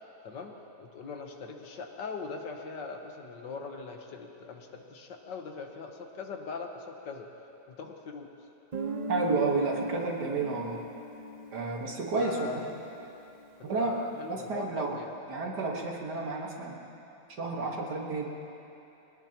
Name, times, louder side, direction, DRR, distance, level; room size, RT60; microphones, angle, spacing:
voice 1, 0.8-7.3 7.7-8.3 12.2-12.7 13.8-15.1, left 4 dB, 70° left, 3 dB, 1.7 m, -41 dB
Guitar, 8.7-13.3, equal, 45° right, 0.5 m, -39 dB
voice 2, 9.1-10.8 11.5-12.6 13.6-13.9 14.3-15.0 15.3-16.8 17.4-18.2, right 3 dB, 60° right, -1 dB, 2.1 m, -31 dB
22.5 x 19.0 x 2.9 m, 2.9 s
omnidirectional pair, 2.1 m